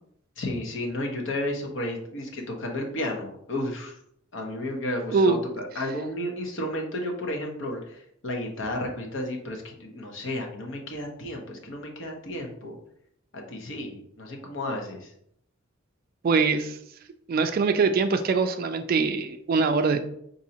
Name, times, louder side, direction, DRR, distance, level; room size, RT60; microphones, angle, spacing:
voice 1, 0.4-4.0 4.3-12.8 13.3-15.1, left 1 dB, 65° left, 1 dB, 0.9 m, -32 dB
voice 2, 5.1-5.4 16.2-16.8 17.3-20.1, right 4 dB, 45° right, 8 dB, 0.3 m, -23 dB
5.1 x 2.7 x 2.8 m, 0.72 s
head